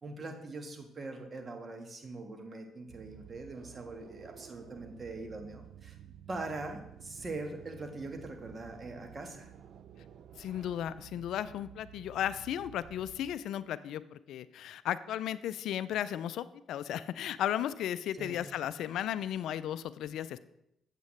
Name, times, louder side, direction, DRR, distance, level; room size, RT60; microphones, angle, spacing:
voice 1, 0.0-6.0 6.3-9.5 18.2-18.4, right 2 dB, 40° right, 5 dB, 1.5 m, -42 dB
sound 1, 2.9-13.4, right 9 dB, 65° right, 0.5 m, -52 dB
voice 2, 10.4-20.4, left 11 dB, 70° left, 15 dB, 0.3 m, -35 dB
8.2 x 8.1 x 3.2 m, 0.82 s
hypercardioid pair, 55°, 0 cm